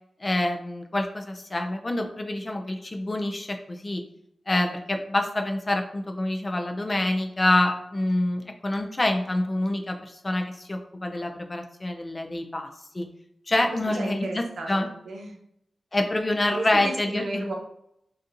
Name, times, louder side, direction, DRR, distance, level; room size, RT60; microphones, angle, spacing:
voice 1, 0.2-4.0 4.5-12.7 12.9-13.1 13.5-14.9 15.9-17.5, left 1 dB, 20° left, 4 dB, 0.4 m, -26 dB
voice 2, 13.5-15.3 16.5-17.5, right 2 dB, 90° right, 1 dB, 0.7 m, -34 dB
4.1 x 2.4 x 2.5 m, 0.76 s
wide cardioid pair, 165°, 0 cm